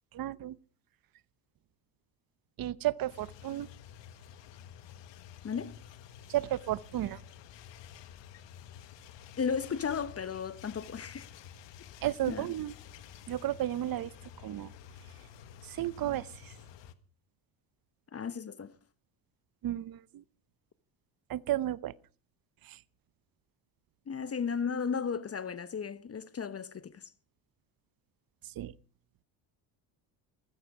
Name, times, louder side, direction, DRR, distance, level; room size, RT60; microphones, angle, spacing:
voice 1, 0.1-0.6 2.6-3.7 6.3-7.2 12.0-12.7 13.3-14.1 14.4-14.7 15.7-16.5 19.6-20.2 21.3-21.9 22.6-22.8 28.6-28.7, right 13 dB, 50° right, 0.8 m, -33 dB
sound 1, 3.1-16.9, left 9 dB, 65° left, 1.4 m, -51 dB
voice 2, 9.4-11.3 12.3-12.5 18.1-18.7 24.1-27.1, left 6 dB, 30° left, 0.9 m, -34 dB
15.5 x 14.0 x 4.8 m
supercardioid pair, 80°, 46 cm